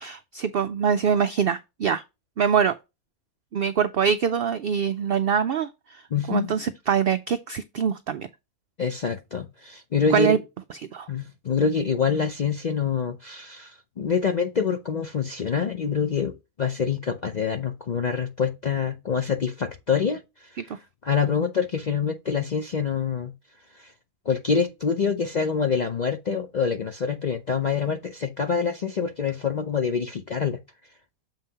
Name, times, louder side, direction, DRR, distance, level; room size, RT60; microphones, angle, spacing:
voice 1, 0.0-2.0 2.4-2.8 3.5-6.0 6.3-8.3 10.1-10.4 10.9-11.1, right 7 dB, 85° right, 0.5 m, -24 dB
voice 2, 6.1-6.6 8.8-10.4 11.1-23.3 23.7-23.9 24.3-30.6, left 6 dB, 60° left, 0.4 m, -26 dB
7.3 x 5.5 x 2.8 m
omnidirectional pair, 1.5 m